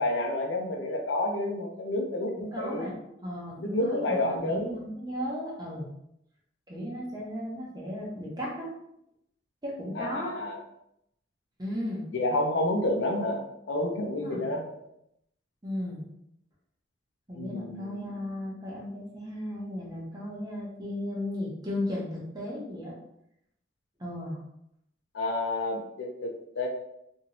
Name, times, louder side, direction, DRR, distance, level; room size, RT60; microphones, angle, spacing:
voice 1, 0.0-2.9 3.6-4.7 9.9-10.6 12.1-13.4 13.7-14.8 17.3-18.1 25.1-26.7, left 1 dB, 75° left, 1 dB, 0.5 m, -29 dB
voice 2, 2.5-2.9 3.2-5.9 6.7-8.7 9.6-10.4 11.6-12.0 14.1-14.4 15.6-16.0 17.3-23.0 24.0-24.4, left 1 dB, 20° right, -4 dB, 0.8 m, -35 dB
2.9 x 2.6 x 2.9 m, 0.78 s
head